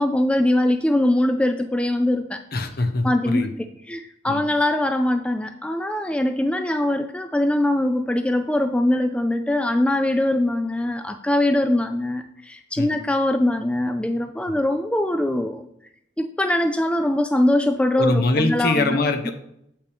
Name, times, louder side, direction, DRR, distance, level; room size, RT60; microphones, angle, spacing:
voice 1, 0.0-2.4 3.0-3.5 3.9-15.6 16.2-19.0 19.3-19.4, left 1 dB, 5° left, 7 dB, 0.3 m, -22 dB
voice 2, 2.5-3.5 4.3-4.4 12.8-12.9 18.0-19.3, left 2 dB, 55° left, 6 dB, 0.9 m, -23 dB
7.9 x 5.7 x 3.4 m, 0.75 s
head